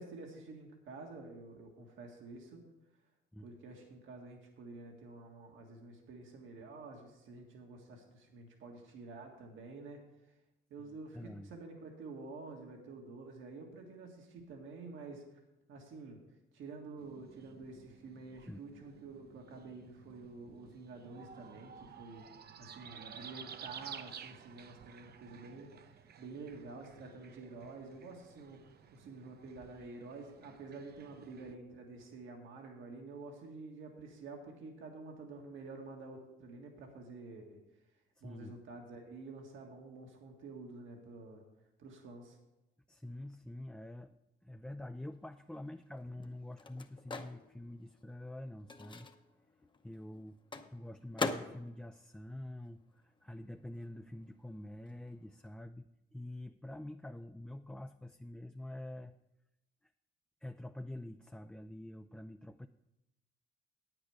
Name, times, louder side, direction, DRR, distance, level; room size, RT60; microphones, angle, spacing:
voice 1, 0.0-2.6 3.4-10.3 10.7-15.4 15.7-16.2 16.5-22.3 22.6-37.6 38.2-41.4 41.8-42.4, right 3 dB, 80° right, 2 dB, 1.8 m, -49 dB
voice 2, 10.8-11.5 18.5-18.6 38.2-38.5 42.9-44.1 44.4-49.1 49.8-50.4 50.7-59.1 60.4-62.7, left 1 dB, 5° left, 7 dB, 0.3 m, -47 dB
sound 1, 17.0-31.5, right 7 dB, 55° right, 0.7 m, -54 dB
Microwave oven, 45.2-53.4 53.6-55.5, left 3 dB, 25° left, 0.8 m, -44 dB
9.3 x 8.8 x 4.9 m, 0.91 s
cardioid pair, 90°, 20 cm